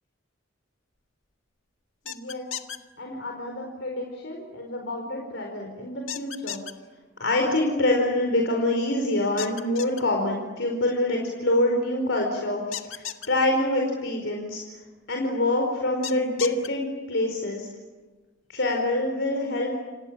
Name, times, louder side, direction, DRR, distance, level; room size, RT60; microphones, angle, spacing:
voice 1, 2.0-2.4 3.0-6.6 7.2-13.0 13.3-14.6 15.1-17.7 18.5-19.7, left 1 dB, 70° left, 1 dB, 4.8 m, -26 dB
sound 1, 2.1-2.8 6.1-6.7 9.4-10.0 12.7-13.3 16.0-16.7, left 10 dB, 85° left, 1.8 m, -34 dB
30.0 x 26.0 x 7.6 m, 1.3 s
head